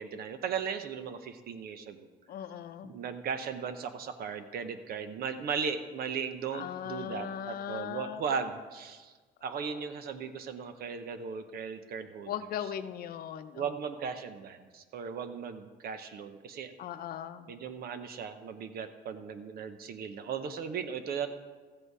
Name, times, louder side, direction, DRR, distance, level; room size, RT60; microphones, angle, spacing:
voice 1, 0.0-2.1 2.8-9.1 9.4-12.3 13.5-16.7 17.5-21.3, right 6 dB, 65° right, 10 dB, 1.0 m, -37 dB
voice 2, 2.3-2.9 6.5-8.3 9.5-9.8 12.3-13.7 16.8-17.5, left 9 dB, 60° left, 10 dB, 0.7 m, -39 dB
14.5 x 7.9 x 4.8 m, 1.4 s
cardioid pair, 110°, 17 cm